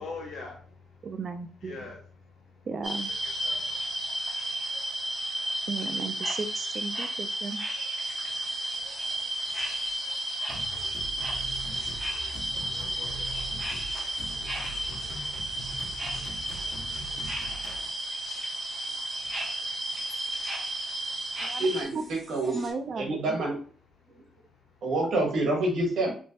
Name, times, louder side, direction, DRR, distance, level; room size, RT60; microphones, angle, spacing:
voice 1, 0.0-1.1 1.6-3.0 3.2-5.6 9.2-10.1 11.8-16.1 16.3-18.2 18.5-20.8 21.0-21.4 24.0-24.8, left 3 dB, 70° left, 0 dB, 1.4 m, -50 dB
voice 2, 1.0-1.9 2.7-3.1 5.7-7.6 21.4-21.7 21.9-22.0 22.4-23.4, right 4 dB, 45° right, 9 dB, 0.3 m, -35 dB
sound 1, 2.8-21.8, right 1 dB, 15° right, 1.1 m, -33 dB
sound 2, 8.0-22.7, equal, 5° left, 1.8 m, -52 dB
sound 3, 10.5-17.9, right 1 dB, 50° left, 1.3 m, -42 dB
voice 3, 21.6-22.6 23.0-23.6 24.1-24.2 24.8-26.1, right 2 dB, 75° right, 0 dB, 1.4 m, -27 dB
3.2 x 3.1 x 2.7 m, 0.42 s
cardioid pair, 105°, 0 cm